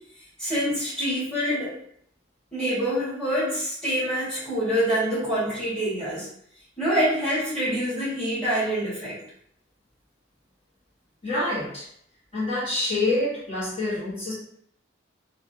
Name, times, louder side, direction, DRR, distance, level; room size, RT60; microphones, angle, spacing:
voice 1, 0.4-1.7 2.5-6.3 6.8-9.2, equal, 5° left, -9 dB, 1.5 m, -26 dB
voice 2, 11.2-11.9 12.3-14.3, left 2 dB, 30° left, -10 dB, 1.1 m, -26 dB
3.4 x 2.2 x 2.6 m, 0.69 s
head